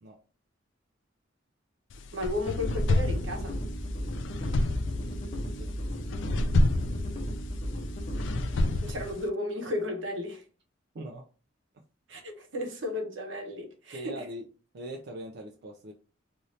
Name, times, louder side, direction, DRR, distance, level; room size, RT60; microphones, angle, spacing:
sound 1, 1.9-9.3, left 2 dB, 70° left, 0.3 m, -30 dB
voice 1, 2.1-3.6 8.7-10.4 12.1-14.2, left 1 dB, 80° right, 0.9 m, -34 dB
sound 2, 2.4-8.8, equal, 40° left, 0.8 m, -35 dB
voice 2, 10.9-11.3 13.9-14.5 14.7-15.9, right 1 dB, 60° right, 0.4 m, -41 dB
2.6 x 2.6 x 3.1 m
head